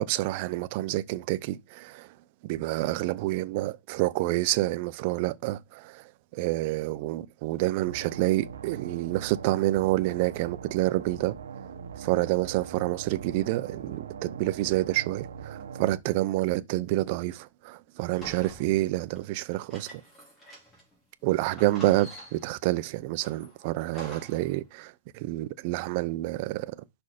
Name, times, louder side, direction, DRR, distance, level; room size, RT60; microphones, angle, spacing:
voice 1, 0.0-2.1 2.4-11.4 12.0-20.0 21.2-26.8, right 17 dB, 30° right, 0.5 m, -28 dB
sound 1, 7.8-16.0, right 7 dB, 70° right, 1.2 m, -41 dB
sound 2, 18.2-20.9 21.2-21.3 21.5-22.6 23.2-24.5, right 1 dB, 10° left, 2.6 m, -47 dB
5.5 x 4.2 x 4.9 m
hypercardioid pair, 165°, 0 cm